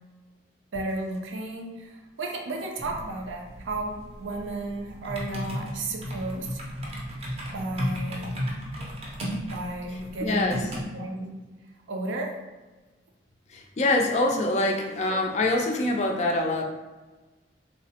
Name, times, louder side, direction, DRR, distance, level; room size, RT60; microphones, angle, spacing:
voice 1, 0.7-6.6 7.5-8.4 9.5-10.6 10.9-11.4 11.9-12.4, right 2 dB, 85° right, 2 dB, 0.5 m, -33 dB
sound 1, 2.8-10.8, equal, 30° right, 0.5 m, -35 dB
voice 2, 10.2-10.6 13.5-16.6, left 2 dB, 35° left, 1 dB, 0.3 m, -24 dB
3.3 x 2.0 x 2.7 m, 1.2 s
head